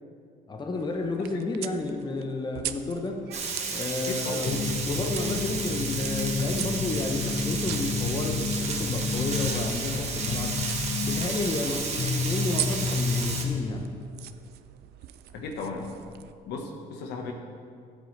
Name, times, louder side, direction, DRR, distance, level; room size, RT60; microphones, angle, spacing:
voice 1, 0.5-3.3 3.7-10.7 11.0-13.9, left 3 dB, 25° left, 3 dB, 0.9 m, -31 dB
sound 1, 0.7-16.3, right 13 dB, 70° right, 0.5 m, -42 dB
Frying (food), 3.3-13.4, right 4 dB, 40° right, 1.5 m, -33 dB
voice 2, 4.0-4.5 4.9-5.0 15.3-15.9 16.5-17.3, left 4 dB, 80° left, 3 dB, 1.3 m, -36 dB
sound 2, 4.4-13.8, left 4 dB, 65° left, 0.9 m, -31 dB
14.0 x 8.6 x 3.3 m, 2.3 s
cardioid pair, 110°, 17 cm